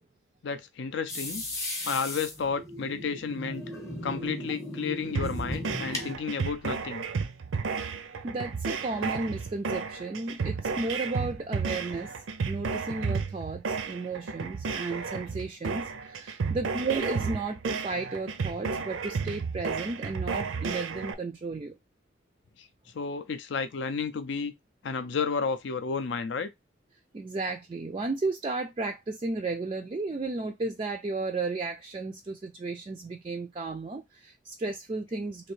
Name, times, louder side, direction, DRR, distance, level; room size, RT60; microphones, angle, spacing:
voice 1, 0.4-1.4 1.8-3.6 4.0-7.0 22.6-22.7 22.9-24.5 24.8-26.5, left 5 dB, 65° left, 0.4 m, -32 dB
sound 1, 1.1-6.1, left 1 dB, 15° left, 0.7 m, -36 dB
sound 2, 5.1-21.1, right 5 dB, 85° right, 0.5 m, -32 dB
voice 2, 8.2-12.2 12.4-21.7 27.1-35.5, right 3 dB, 30° right, 0.3 m, -33 dB
3.2 x 2.6 x 3.1 m
head